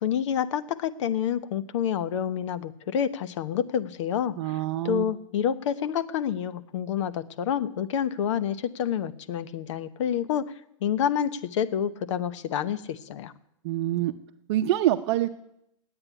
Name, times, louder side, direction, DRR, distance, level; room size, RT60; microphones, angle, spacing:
voice 1, 0.0-4.6 4.8-10.4 10.8-13.3, left 9 dB, 65° left, 13 dB, 0.9 m, -28 dB
voice 2, 4.4-5.0 13.6-14.1 14.5-15.3, right 13 dB, 55° right, 9 dB, 0.7 m, -25 dB
9.9 x 8.9 x 9.9 m, 0.78 s
hypercardioid pair, 110°, 17 cm